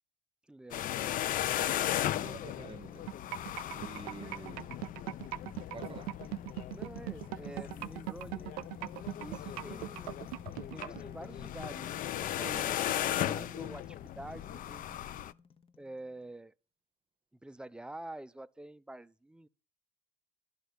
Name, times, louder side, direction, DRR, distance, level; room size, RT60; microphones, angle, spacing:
voice 1, 0.5-1.3 4.2-4.4 6.7-8.7 9.2-10.3 10.7-15.0 15.8-16.5 17.4-19.5, right 1 dB, 5° right, 0.5 m, -47 dB
sound 1, 0.7-15.3, left 12 dB, 45° left, 0.5 m, -37 dB
voice 2, 1.6-3.1 3.7-4.7 5.7-6.2, right 5 dB, 25° right, 0.9 m, -49 dB
sound 2, 2.2-16.2, left 6 dB, 30° left, 1.0 m, -53 dB
sound 3, 3.1-11.0, right 17 dB, 75° right, 0.4 m, -39 dB
11.5 x 5.2 x 8.3 m
hypercardioid pair, 70°, 20 cm